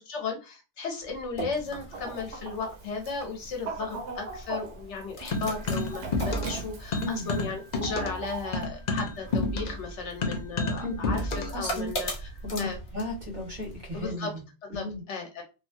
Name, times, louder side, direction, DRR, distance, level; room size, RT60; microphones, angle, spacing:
voice 1, 0.1-12.1 12.6-12.8 13.9-14.3 14.7-15.4, left 4 dB, 85° left, 2 dB, 1.2 m, -35 dB
sound 1, 1.0-14.1, right 1 dB, 65° left, 1.2 m, -42 dB
Chicken rooster, 1.9-8.7, right 4 dB, 85° right, 1.0 m, -40 dB
sound 2, 5.3-6.6 6.9-11.6, left 2 dB, 50° left, 0.6 m, -30 dB
voice 2, 6.9-7.3 10.8-11.9 12.4-15.0, left 1 dB, 45° right, -2 dB, 1.3 m, -35 dB
2.8 x 2.3 x 2.6 m, 0.30 s
omnidirectional pair, 1.2 m